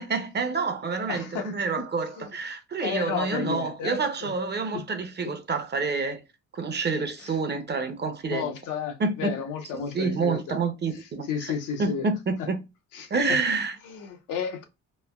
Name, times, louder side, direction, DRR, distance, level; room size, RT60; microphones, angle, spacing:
voice 1, 0.0-6.2 6.5-8.5 9.0-9.3 9.9-11.5 11.8-12.6 13.1-13.8, right 4 dB, 35° right, 0.7 m, -28 dB
voice 2, 1.1-1.9 2.2-2.4 2.8-4.3 4.7-4.8 5.2-5.3 7.2-7.4 8.3-10.6 11.2-12.1 12.4-12.5 12.9-13.1 13.8-14.6, left 7 dB, 90° left, 0.8 m, -32 dB
3.2 x 2.2 x 2.2 m
cardioid pair, 90°, 30 cm